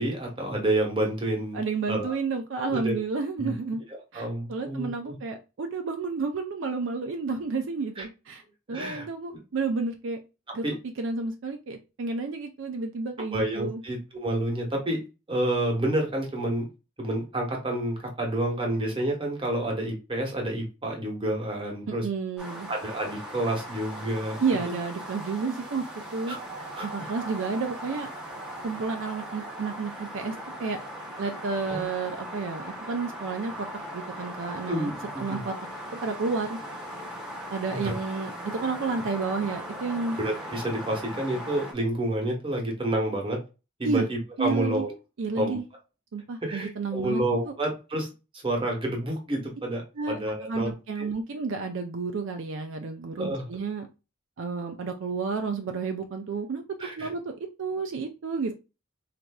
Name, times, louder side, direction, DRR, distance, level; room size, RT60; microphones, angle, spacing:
voice 1, 0.0-1.6 1.9-2.2 2.6-3.0 3.4-3.5 3.9-5.2 8.0-8.1 8.7-9.1 10.6-10.8 13.3-15.0 15.3-16.7 17.0-22.1 22.7-24.4 24.6-24.8 26.3-26.4 26.8-27.1 31.7-31.9 34.7-35.4 37.7-37.9 40.2-43.4 43.8-44.9 45.3-45.6 46.4-48.1 48.3-51.1 53.2-53.4 56.8-57.1, right 1 dB, 25° right, 0 dB, 1.0 m, -29 dB
voice 2, 1.5-3.8 4.1-8.4 8.7-10.2 10.5-10.6 11.0-13.8 21.9-22.7 24.4-25.9 26.1-26.4 26.8-28.1 28.6-30.3 30.6-30.8 31.2-33.5 33.9-35.5 35.9-36.6 37.5-38.3 38.6-40.2 43.8-44.1 44.4-44.8 45.2-45.7 46.1-47.5 50.0-50.2 50.5-53.9 54.4-58.5, right 4 dB, 60° right, 5 dB, 0.4 m, -31 dB
sound 1, 22.4-41.7, equal, 5° right, 0.7 m, -39 dB
4.1 x 2.5 x 2.2 m, 0.30 s
head